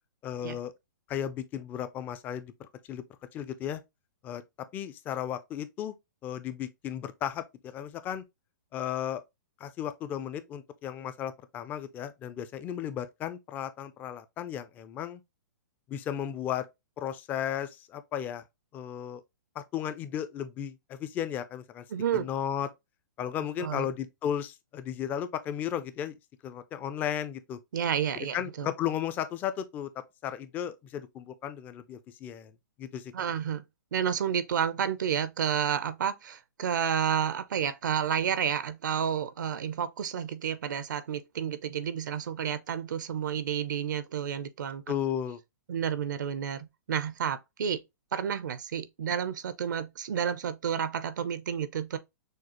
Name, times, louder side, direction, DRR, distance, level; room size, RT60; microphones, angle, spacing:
voice 1, 0.2-0.7 1.1-3.0 3.3-3.8 4.2-4.4 4.7-5.9 6.2-8.2 8.7-9.2 9.6-15.2 15.9-16.7 17.0-18.4 18.7-19.2 19.6-21.8 22.1-22.7 23.2-26.1 26.4-27.6 28.3-29.9 30.2-32.5 32.8-33.3 44.9-45.4, left 10 dB, 15° left, 0.4 m, -34 dB
voice 2, 21.9-22.3 23.6-23.9 27.7-28.7 33.1-33.6 33.9-44.8 45.7-47.8 48.1-52.0, right 8 dB, 75° right, 0.6 m, -30 dB
6.4 x 2.4 x 2.9 m
hypercardioid pair, 155°, 10 cm